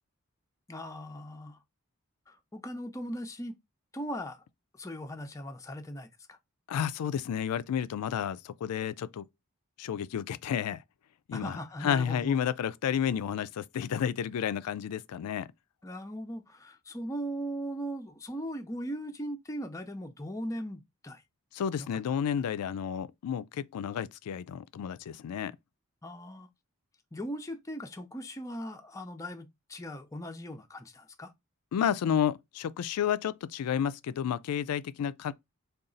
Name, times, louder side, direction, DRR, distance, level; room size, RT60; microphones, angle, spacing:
voice 1, 0.7-1.6 2.3-3.6 3.9-4.4 4.8-6.4 11.3-12.4 15.8-21.2 21.8-22.0 26.0-26.5 27.1-31.3, equal, 15° left, 0.5 m, -39 dB
voice 2, 6.7-9.2 9.8-10.8 11.3-15.5 21.5-25.5 31.7-35.3, left 8 dB, 85° left, 0.3 m, -31 dB
3.9 x 2.3 x 3.8 m
head